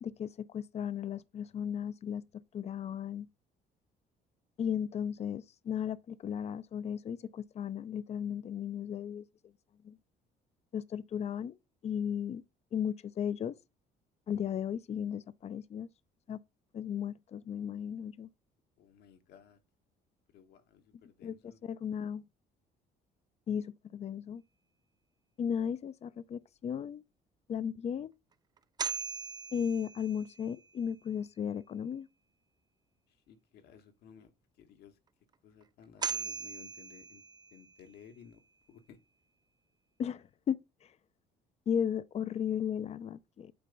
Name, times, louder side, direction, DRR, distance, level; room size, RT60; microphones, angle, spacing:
voice 1, 0.0-3.3 4.6-9.2 9.8-10.0 10.7-11.6 11.8-12.4 12.7-13.5 14.3-15.9 16.3-16.4 16.7-18.3 21.2-22.2 23.5-24.4 25.4-27.0 27.5-28.1 29.5-32.1 40.0-40.6 41.7-43.5, left 8 dB, 40° left, 0.5 m, -35 dB
voice 2, 18.8-19.6 20.3-21.6 33.3-34.3 34.6-35.0 35.4-37.2 37.5-38.4 38.7-39.0, left 7 dB, 75° left, 1.4 m, -56 dB
sound 1, 28.6-30.7 35.6-35.7 36.0-37.9, right 6 dB, 25° right, 0.4 m, -39 dB
8.7 x 3.3 x 5.3 m
cardioid pair, 110°, 17 cm